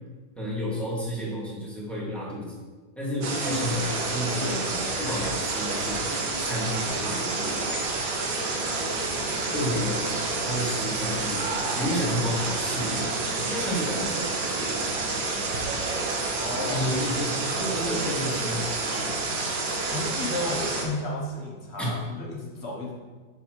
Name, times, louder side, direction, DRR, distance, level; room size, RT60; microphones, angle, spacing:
voice 1, 0.4-2.6 3.0-6.0 6.4-7.5 9.5-10.0 10.4-11.5 11.7-13.1 13.3-14.5 16.7-19.1 21.8-21.9, equal, ahead, -6 dB, 1.5 m, -31 dB
sound 1, 3.2-20.8, right 3 dB, 80° right, 1.7 m, -29 dB
voice 2, 16.3-16.9 19.9-23.0, left 1 dB, 45° left, -2 dB, 1.1 m, -33 dB
6.9 x 6.9 x 2.9 m, 1.4 s
omnidirectional pair, 2.0 m